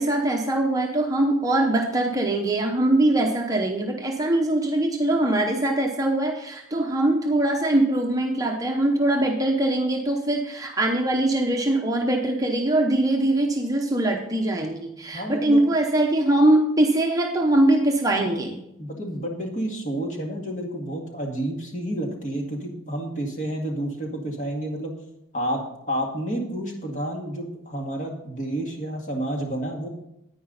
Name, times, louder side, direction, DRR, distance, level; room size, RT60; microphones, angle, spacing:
voice 1, 0.0-18.6, right 1 dB, 15° right, 1 dB, 0.8 m, -22 dB
voice 2, 15.1-15.6 18.8-24.9 25.3-29.9, right 1 dB, 35° left, 1 dB, 2.0 m, -30 dB
10.0 x 9.5 x 4.0 m, 0.81 s
head